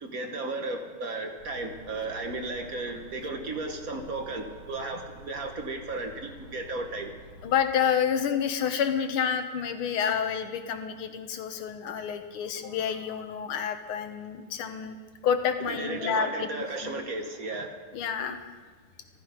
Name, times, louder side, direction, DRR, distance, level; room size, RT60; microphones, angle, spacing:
voice 1, 0.0-7.1 15.7-17.8, right 2 dB, 45° right, 4 dB, 1.5 m, -34 dB
sound 1, 1.4-7.6, right 1 dB, 70° right, 4.4 m, -49 dB
voice 2, 7.4-15.0 15.2-16.5 16.8-17.0 17.9-18.4, left 7 dB, 80° left, 8 dB, 1.9 m, -29 dB
14.0 x 13.5 x 5.1 m, 1.5 s
omnidirectional pair, 2.3 m